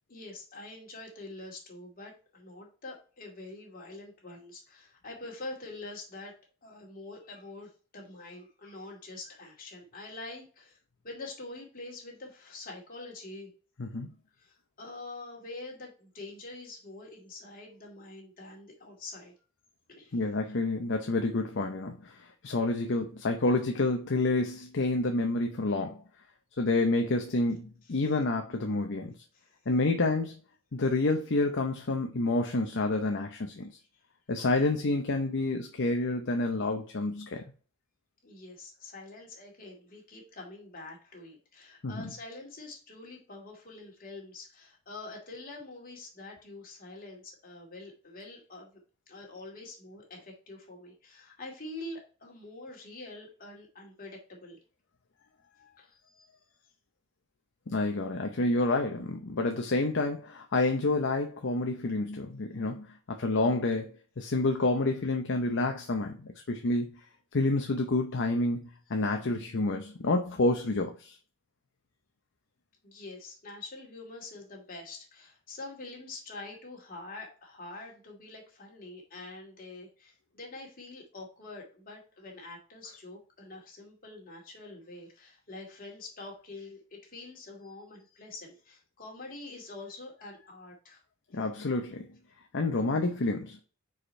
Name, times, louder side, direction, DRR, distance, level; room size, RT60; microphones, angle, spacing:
voice 1, 0.1-10.8 11.0-13.5 14.4-19.3 19.9-20.2 27.8-28.1 29.3-29.5 38.2-48.8 49.1-54.6 55.8-56.3 72.8-91.0, left 2 dB, 45° left, 2.4 m, -45 dB
voice 2, 20.1-26.0 26.6-29.2 29.7-30.3 30.7-33.8 34.3-37.4 41.8-42.1 57.7-63.9 64.2-67.0 67.3-71.2 91.3-92.1 92.5-93.6, left 2 dB, 60° left, 0.7 m, -29 dB
4.9 x 4.7 x 4.3 m
head